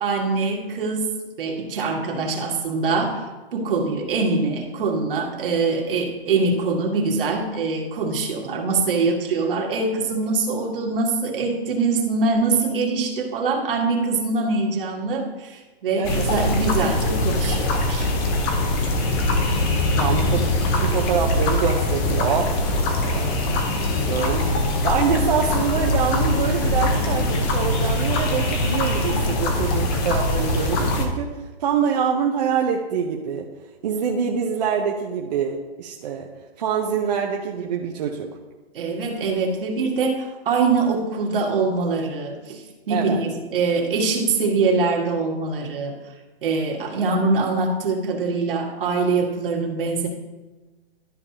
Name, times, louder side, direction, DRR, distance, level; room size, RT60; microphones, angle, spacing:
voice 1, 0.0-1.1 1.4-18.1 20.0-20.2 23.1-23.6 38.7-45.9 46.4-50.1, right 3 dB, 55° right, 1 dB, 1.9 m, -23 dB
sound 1, 16.0-31.1, left 1 dB, 20° left, 0.8 m, -22 dB
voice 2, 16.0-16.3 19.9-22.6 22.8-23.6 23.9-33.5 33.8-36.3 36.6-38.4 42.9-43.2, right 7 dB, 40° right, 0 dB, 0.8 m, -25 dB
12.5 x 5.2 x 2.9 m, 1.2 s
hypercardioid pair, 155°, 32 cm